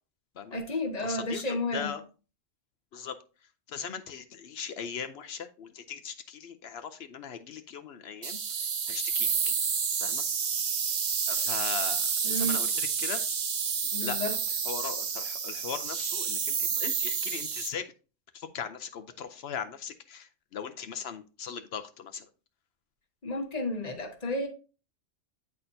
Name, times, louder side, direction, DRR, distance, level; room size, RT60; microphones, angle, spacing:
voice 1, 0.5-1.9 12.2-12.6 13.9-14.3 23.2-24.5, left 1 dB, 35° left, 3 dB, 1.2 m, -32 dB
voice 2, 1.0-1.4 1.7-2.0 2.9-3.2 3.7-8.4 8.9-9.5 10.0-10.2 11.3-13.3 14.0-14.2 14.7-17.9 18.3-22.3, left 7 dB, 65° left, 9 dB, 0.7 m, -39 dB
sound 1, 8.2-17.7, right 6 dB, 50° right, 0.6 m, -29 dB
9.6 x 4.3 x 2.6 m, 0.34 s
omnidirectional pair, 1.3 m